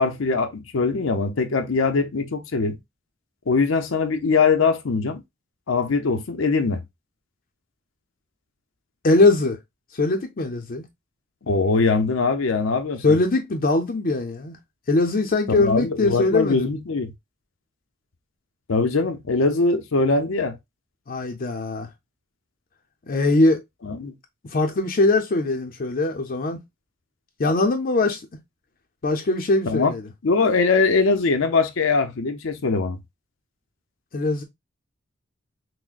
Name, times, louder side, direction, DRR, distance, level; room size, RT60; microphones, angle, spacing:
voice 1, 0.0-2.8 3.5-5.2 5.7-6.8 11.4-13.0 15.5-17.1 18.7-20.6 23.8-24.1 29.7-29.9 30.2-33.0, left 4 dB, 85° left, 0.6 m, -22 dB
voice 2, 9.0-9.6 9.9-10.8 13.0-14.6 14.9-16.7 21.1-21.9 23.1-23.6 24.5-26.6 27.4-28.2 29.0-30.0 34.1-34.4, left 2 dB, 45° left, 0.6 m, -21 dB
6.0 x 2.1 x 2.4 m
head